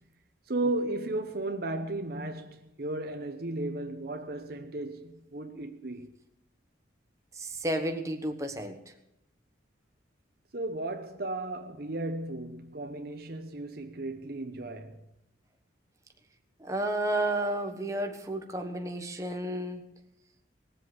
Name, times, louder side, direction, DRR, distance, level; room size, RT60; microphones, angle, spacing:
voice 1, 0.5-6.1 10.5-15.0, right 2 dB, 50° right, 0.9 m, -35 dB
voice 2, 7.4-8.8 16.6-19.8, right 1 dB, 15° right, 1.2 m, -31 dB
19.5 x 7.9 x 7.7 m
head